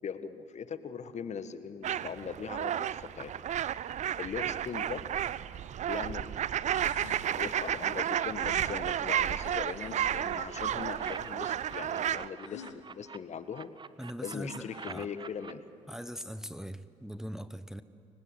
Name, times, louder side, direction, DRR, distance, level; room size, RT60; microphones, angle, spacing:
voice 1, 0.0-3.3 4.2-5.0 5.9-6.8 7.4-13.7 14.2-15.6, left 6 dB, 45° left, 12 dB, 1.6 m, -40 dB
sound 1, 1.8-12.3, right 10 dB, 45° right, 0.7 m, -32 dB
sound 2, 6.3-6.4 6.7-7.3 8.4-10.4 12.4-12.8 14.1-14.2 14.4-15.0, left 8 dB, 80° left, 1.4 m, -50 dB
sound 3, 8.1-9.4 9.8-13.2 13.5-15.5, right 5 dB, 30° right, 1.2 m, -46 dB
voice 2, 14.0-15.1 15.9-17.8, equal, 5° right, 13 dB, 1.1 m, -41 dB
29.5 x 24.0 x 8.3 m, 2.7 s
figure-of-eight pair, 45°, 16 cm